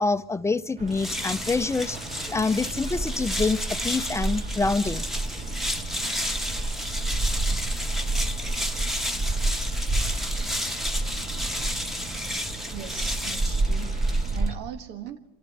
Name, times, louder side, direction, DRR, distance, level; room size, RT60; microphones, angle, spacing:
voice 1, 0.0-2.0 2.3-5.0, left 3 dB, 15° left, 11 dB, 0.6 m, -26 dB
sound 1, 0.8-14.6, right 2 dB, 50° right, 2.1 m, -30 dB
sound 2, 0.9-14.6, left 1 dB, ahead, 1.1 m, -32 dB
voice 2, 12.7-14.0 14.3-15.2, right 10 dB, 85° right, 7 dB, 1.5 m, -38 dB
25.5 x 11.5 x 8.6 m, 1.0 s
cardioid pair, 110°, 17 cm